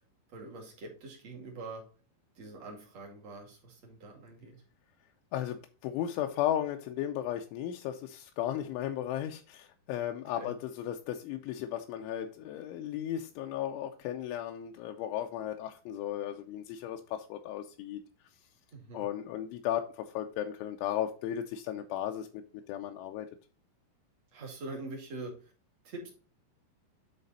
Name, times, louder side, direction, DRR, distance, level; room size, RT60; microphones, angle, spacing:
voice 1, 0.3-1.8 2.3-4.5 10.4-10.5 18.7-19.0 24.3-25.5 25.8-26.1, right 2 dB, 45° right, 2.6 m, -44 dB
voice 2, 5.3-18.0 18.9-22.4 22.7-23.3, left 11 dB, 85° left, 3.0 m, -35 dB
10.5 x 4.2 x 4.1 m
omnidirectional pair, 5.6 m